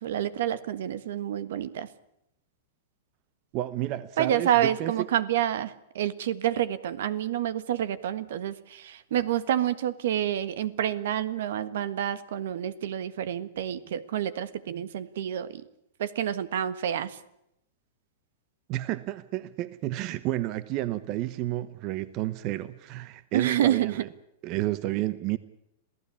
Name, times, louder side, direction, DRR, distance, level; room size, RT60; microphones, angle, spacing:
voice 1, 0.0-1.9 4.2-15.6 16.0-17.2 23.3-24.0, right 11 dB, 75° right, 1.5 m, -28 dB
voice 2, 3.5-5.1 18.7-24.1 24.4-25.4, right 15 dB, 40° right, 0.9 m, -31 dB
27.0 x 16.0 x 8.5 m
supercardioid pair, 150°, 0 cm